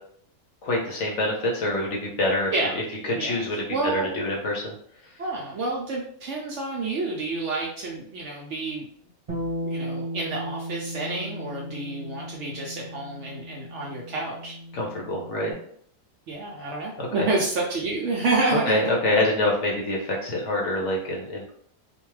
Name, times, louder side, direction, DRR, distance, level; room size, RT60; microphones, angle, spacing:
voice 1, 0.6-2.5 3.0-3.6 3.9-4.7 14.7-15.5 17.0-17.3 18.7-21.5, left 1 dB, 65° left, -1 dB, 0.8 m, -26 dB
voice 2, 3.7-4.1 5.2-8.9 9.6-14.6 16.3-19.0, right 3 dB, 65° right, -2 dB, 0.7 m, -29 dB
Bass guitar, 9.3-15.5, equal, 30° right, 0.9 m, -35 dB
2.5 x 2.2 x 3.1 m, 0.63 s
omnidirectional pair, 1.6 m